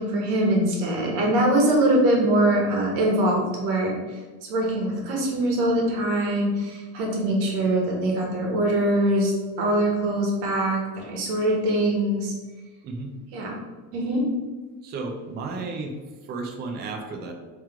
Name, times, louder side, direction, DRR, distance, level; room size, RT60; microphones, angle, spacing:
voice 1, 0.0-3.9 4.5-9.3 9.6-12.3 13.3-13.5 13.9-14.2, right 1 dB, 60° right, -1 dB, 1.5 m, -23 dB
voice 2, 14.8-16.0 16.3-17.3, right 3 dB, 25° right, 3 dB, 0.4 m, -33 dB
3.6 x 3.2 x 4.4 m, 1.3 s
cardioid pair, 150°, 45 cm